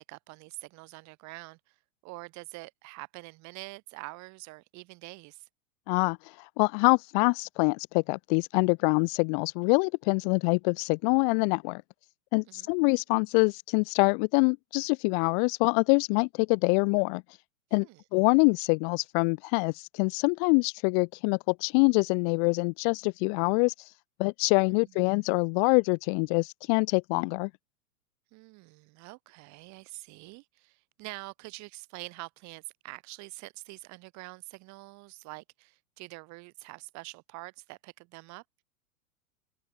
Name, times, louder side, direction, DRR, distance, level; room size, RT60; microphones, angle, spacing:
voice 1, 0.0-1.8 2.0-5.5 12.5-12.7 17.8-18.0 24.7-25.1 28.3-38.4, right 24 dB, 40° right, 5.1 m, -45 dB
voice 2, 5.9-11.8 12.3-17.2 17.7-17.9 18.1-23.7 24.2-27.5, left 40 dB or more, 35° left, 0.7 m, -25 dB
figure-of-eight pair, 100°, 42 cm